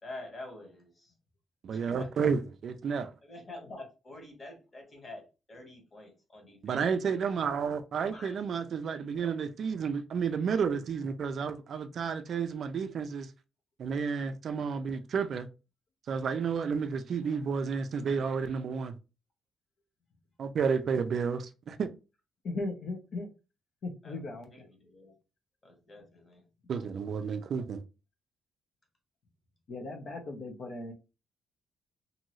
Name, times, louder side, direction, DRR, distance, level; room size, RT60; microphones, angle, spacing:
voice 1, 0.0-1.1 1.7-2.1 3.2-6.8 8.1-8.4 24.0-25.1 25.6-26.4, left 2 dB, 25° left, 1.1 m, -47 dB
voice 2, 1.6-3.1 6.6-13.3 13.8-15.5 16.1-18.9 20.4-21.9 26.7-27.8, right 6 dB, 50° right, 0.3 m, -31 dB
voice 3, 22.4-23.3 23.8-24.5 29.7-30.9, left 2 dB, 55° left, 0.7 m, -37 dB
2.7 x 2.5 x 3.0 m
cardioid pair, 140°, 0 cm